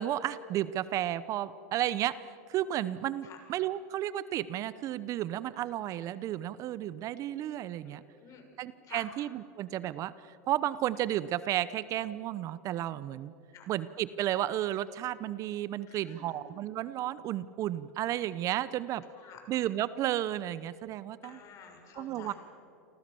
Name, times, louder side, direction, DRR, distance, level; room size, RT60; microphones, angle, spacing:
voice 1, 0.0-8.0 8.6-13.3 13.7-19.0 19.5-21.4 22.0-22.3, right 12 dB, 40° right, 17 dB, 0.8 m, -33 dB
voice 2, 7.8-8.5 8.8-9.0 13.5-13.7 15.9-16.3 19.1-19.4 21.2-22.4, left 7 dB, 40° left, 4 dB, 6.7 m, -51 dB
29.5 x 24.5 x 7.0 m, 2.7 s
hypercardioid pair, 115°, 8 cm